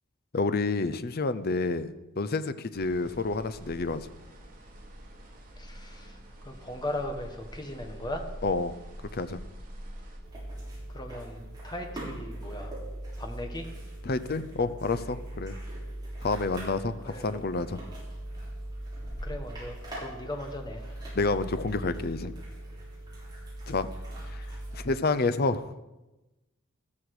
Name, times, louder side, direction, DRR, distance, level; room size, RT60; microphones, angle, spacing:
voice 1, 0.3-4.0 8.4-8.7 9.1-9.4 14.0-15.5 16.2-17.8 21.1-22.3 23.7-23.9 24.3-24.4 24.7-25.6, left 3 dB, 45° left, 12 dB, 0.7 m, -29 dB
sound 1, 2.7-10.2, equal, 40° right, 2.8 m, -45 dB
voice 2, 5.6-6.2 6.4-8.3 10.9-12.7 13.2-13.7 17.0-17.5 19.2-20.8, left 1 dB, 20° left, 4 dB, 1.5 m, -38 dB
sound 2, 10.2-24.9, right 1 dB, 20° right, 6.7 m, -40 dB
14.0 x 14.0 x 4.9 m, 1.0 s
head